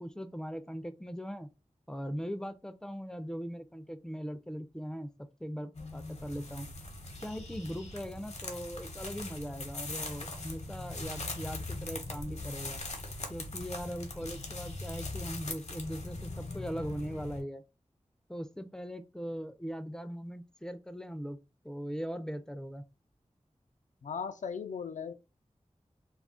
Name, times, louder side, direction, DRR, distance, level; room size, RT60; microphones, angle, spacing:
voice 1, 0.0-1.5 1.9-5.1 5.4-6.7 7.2-12.8 13.3-17.6 18.3-21.4 21.6-22.8, equal, 5° left, 0.4 m, -40 dB
sound 1, 5.7-17.4, left 2 dB, 60° left, 0.7 m, -41 dB
voice 2, 24.0-25.1, left 6 dB, 85° left, 0.4 m, -37 dB
2.3 x 2.1 x 3.6 m
wide cardioid pair, 65°, 12 cm